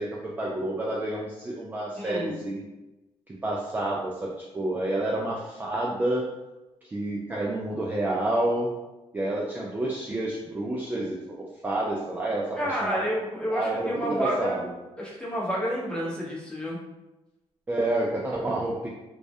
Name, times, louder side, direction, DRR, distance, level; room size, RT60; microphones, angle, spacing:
voice 1, 0.0-2.6 3.3-6.3 6.8-8.7 9.1-13.1 13.5-14.7 17.7-18.9, right 1 dB, 15° right, -4 dB, 0.3 m, -29 dB
voice 2, 2.0-2.4 12.6-14.6 15.0-16.8, equal, 10° left, -5 dB, 0.7 m, -30 dB
2.3 x 2.1 x 2.6 m, 1.0 s
cardioid pair, 110°, 11 cm